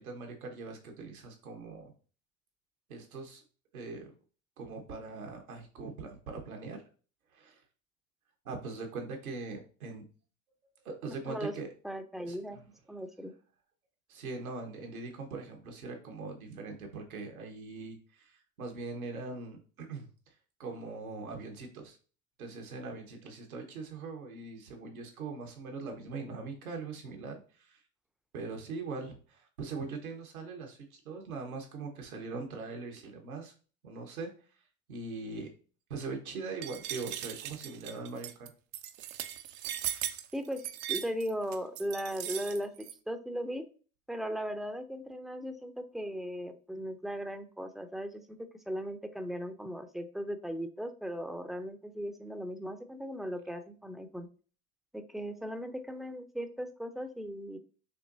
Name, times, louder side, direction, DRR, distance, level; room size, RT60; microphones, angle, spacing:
voice 1, 0.0-1.9 2.9-3.4 3.7-4.1 4.6-6.8 7.3-7.6 8.4-10.0 10.8-11.7 12.3-12.6 14.1-20.1 20.6-22.0 22.4-27.8 28.3-33.5 33.8-34.3 34.9-35.5 35.9-38.3, right 4 dB, 85° right, 2 dB, 1.3 m, -41 dB
voice 2, 11.8-12.6 12.9-13.3 40.3-40.6 40.9-43.6 44.1-48.4 48.7-54.3 54.9-57.6, equal, ahead, 8 dB, 0.5 m, -37 dB
sound 1, 36.6-42.9, right 12 dB, 70° right, 0.6 m, -38 dB
6.6 x 3.0 x 2.6 m, 0.38 s
hypercardioid pair, 75°, 42 cm